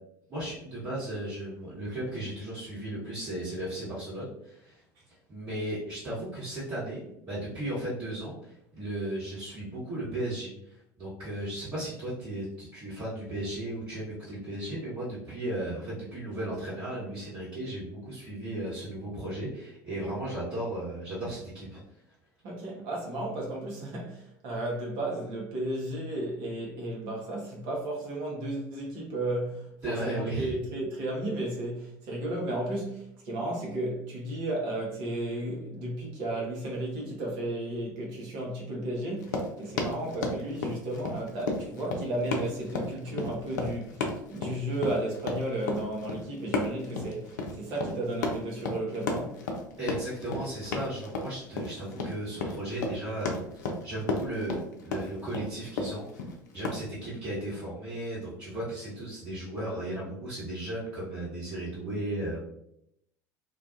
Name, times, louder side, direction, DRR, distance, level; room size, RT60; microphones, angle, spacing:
voice 1, 0.3-4.8 5.3-21.8 29.8-30.6 49.8-53.4 53.8-56.2 56.5-62.4, right 1 dB, 40° right, 1.3 m, -35 dB
voice 2, 22.4-49.4, right 1 dB, 60° right, 0.9 m, -33 dB
Run, 39.2-56.8, left 3 dB, 70° left, 0.4 m, -33 dB
2.5 x 2.3 x 2.5 m
figure-of-eight pair, 65°, 10 cm